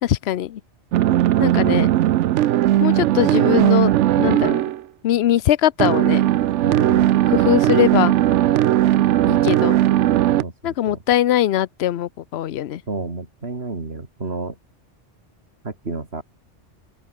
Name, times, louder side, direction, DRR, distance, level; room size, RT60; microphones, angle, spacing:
voice 1, 0.0-0.6 1.4-1.9 2.8-4.6 5.0-6.2 7.3-8.1 9.3-9.8 10.6-12.8, left 12 dB, 70° left, 0.9 m, -21 dB
sound 1, 0.9-4.8 5.8-10.4, right 13 dB, 85° right, 0.9 m, -17 dB
voice 2, 6.6-7.2 10.4-11.0 12.9-14.6 15.6-16.2, right 3 dB, 60° right, 3.1 m, -30 dB
open air
omnidirectional pair, 1.2 m